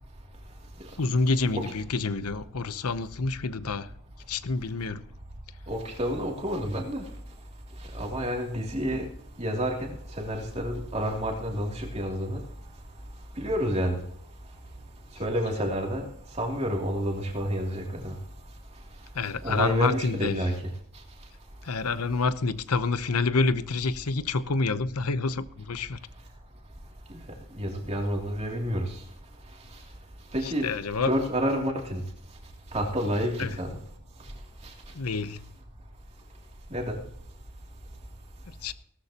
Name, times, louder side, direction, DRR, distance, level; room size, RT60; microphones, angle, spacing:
voice 1, 1.0-3.9 4.3-5.1 19.1-20.5 21.6-26.0 30.4-31.1 33.4-33.5 34.9-35.4 38.6-38.7, left 3 dB, 85° left, 0.8 m, -28 dB
voice 2, 5.7-7.1 7.8-9.1 9.4-12.4 13.4-14.0 15.1-16.0 16.3-18.2 19.4-20.7 27.1-27.2 27.5-29.0 30.3-30.7 31.1-32.0 32.7-33.8 34.6-34.7 36.7-37.0, equal, 30° right, 2.8 m, -29 dB
17.5 x 13.5 x 2.9 m
head